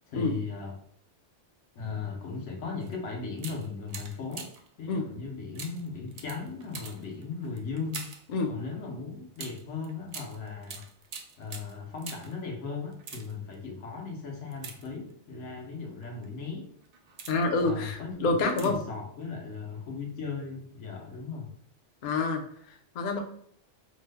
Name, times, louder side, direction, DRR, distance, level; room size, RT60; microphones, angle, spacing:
voice 1, 0.1-0.8 1.7-4.5 4.8-8.1 8.5-10.8 11.4-16.7 17.6-21.5, left 4 dB, 85° left, 0 dB, 1.1 m, -37 dB
sound 1, 2.8-3.0 3.4-4.7 5.6-8.3 9.4-12.4 12.9-13.6 14.5-15.4 16.0-16.3 16.8-17.6 18.5-19.0 19.2-19.3, right 5 dB, 75° right, 0.3 m, -44 dB
voice 2, 17.3-18.8 22.0-23.2, left 3 dB, 55° left, 3 dB, 0.6 m, -28 dB
3.0 x 2.1 x 3.3 m, 0.63 s
omnidirectional pair, 1.2 m